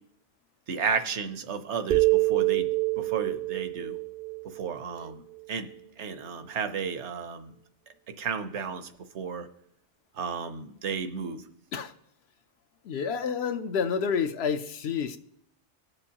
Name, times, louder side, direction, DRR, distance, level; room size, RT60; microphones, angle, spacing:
voice 1, 0.7-2.7 3.0-3.9 4.4-5.2 5.5-5.7 6.0-7.5 8.2-9.5 10.2-11.4, right 6 dB, 75° right, 10 dB, 1.1 m, -33 dB
sound 1, 1.9-5.4, right 21 dB, 60° right, 0.6 m, -27 dB
voice 2, 12.9-15.2, left 6 dB, 70° left, 9 dB, 0.8 m, -29 dB
19.5 x 7.0 x 2.9 m, 0.76 s
omnidirectional pair, 1.2 m